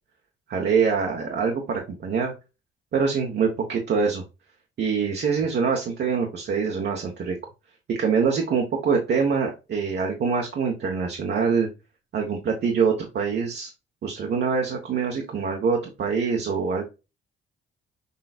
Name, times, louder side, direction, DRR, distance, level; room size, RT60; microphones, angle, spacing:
voice 1, 0.5-2.3 2.9-4.2 4.8-7.3 7.9-11.7 12.1-13.7 14.0-16.8, right 5 dB, 60° right, 1 dB, 1.3 m, -24 dB
6.8 x 3.2 x 2.4 m, 0.28 s
cardioid pair, 90°, 20 cm